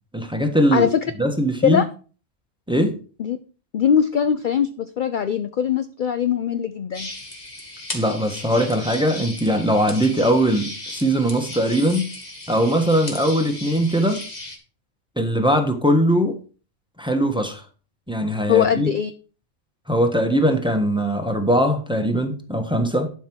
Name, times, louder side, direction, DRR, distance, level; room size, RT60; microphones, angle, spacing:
voice 1, 0.1-0.9 1.2-1.8 2.7-3.0 7.9-12.1 12.5-14.3 15.2-16.4 17.0-17.6 18.1-18.9 19.9-23.1, equal, 5° right, 5 dB, 1.3 m, -20 dB
voice 2, 3.7-7.1 18.5-19.1, left 8 dB, 55° left, 10 dB, 0.6 m, -21 dB
sound 1, 6.9-14.6, left 1 dB, 35° left, 2.0 m, -36 dB
11.5 x 5.8 x 4.7 m, 0.38 s
omnidirectional pair, 1.2 m